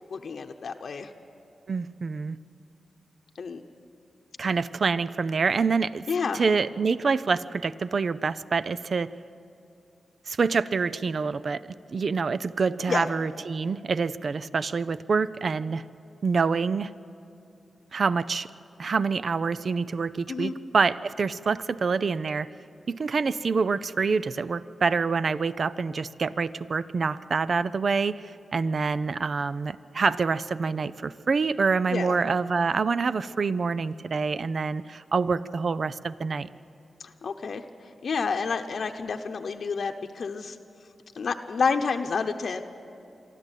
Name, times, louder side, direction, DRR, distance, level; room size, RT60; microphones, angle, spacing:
voice 1, 0.1-1.1 3.4-3.6 6.1-6.4 12.9-13.1 20.3-20.5 31.9-32.1 37.0-37.6 38.0-40.6 41.1-42.6, left 5 dB, 65° left, 5 dB, 0.9 m, -29 dB
voice 2, 1.7-2.4 4.4-6.0 6.3-9.1 10.3-11.6 11.9-15.8 16.2-16.9 17.9-18.5 18.8-22.5 22.9-36.5, right 4 dB, 55° right, 16 dB, 0.5 m, -26 dB
23.5 x 13.5 x 9.2 m, 2.7 s
cardioid pair, 85°, 0 cm